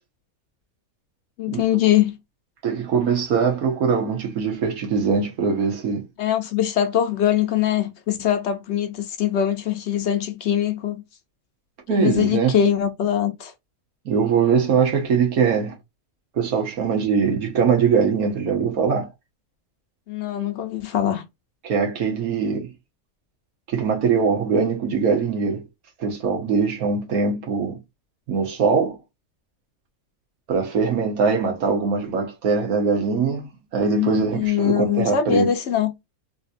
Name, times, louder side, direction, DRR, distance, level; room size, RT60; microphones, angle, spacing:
voice 1, 1.4-2.1 6.2-11.0 11.9-13.5 20.1-21.2 33.9-35.9, left 10 dB, 60° left, 0.8 m, -22 dB
voice 2, 2.6-6.0 11.9-12.5 14.0-15.7 16.3-19.1 21.6-22.7 23.7-25.6 26.0-27.8 28.3-29.0 30.5-35.5, right 5 dB, 85° right, 1.5 m, -22 dB
3.4 x 2.8 x 2.4 m
omnidirectional pair, 1.5 m